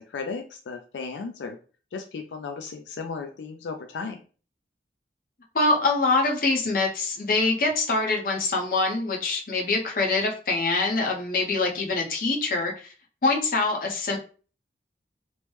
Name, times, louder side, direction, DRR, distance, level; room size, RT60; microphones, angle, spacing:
voice 1, 0.1-1.6 1.9-4.2, left 4 dB, 85° left, 5 dB, 0.4 m, -35 dB
voice 2, 5.5-12.9 13.2-14.2, left 3 dB, 50° left, 1 dB, 0.6 m, -24 dB
3.0 x 2.1 x 3.1 m, 0.38 s
head